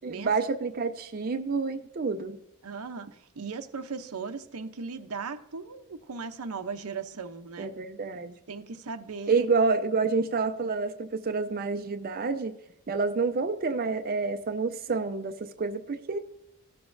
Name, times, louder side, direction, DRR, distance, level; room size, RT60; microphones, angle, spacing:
voice 1, 0.0-2.4 7.6-8.4 9.3-12.5 12.9-16.2, right 4 dB, 40° right, 7 dB, 0.5 m, -28 dB
voice 2, 2.6-7.7 8.1-9.5, right 5 dB, 85° right, 9 dB, 0.7 m, -38 dB
16.0 x 6.9 x 2.6 m, 0.85 s
head